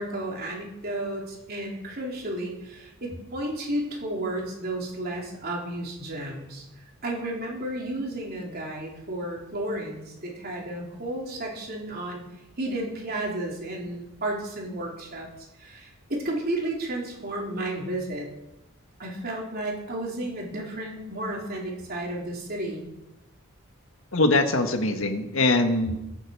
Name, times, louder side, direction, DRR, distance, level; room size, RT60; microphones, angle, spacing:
voice 1, 0.0-6.6 7.0-12.2 12.6-15.3 15.6-18.3 19.0-22.9, right 1 dB, 45° right, -2 dB, 3.9 m, -32 dB
voice 2, 24.1-26.0, left 2 dB, 65° left, 6 dB, 1.7 m, -22 dB
23.0 x 9.0 x 4.9 m, 0.95 s
head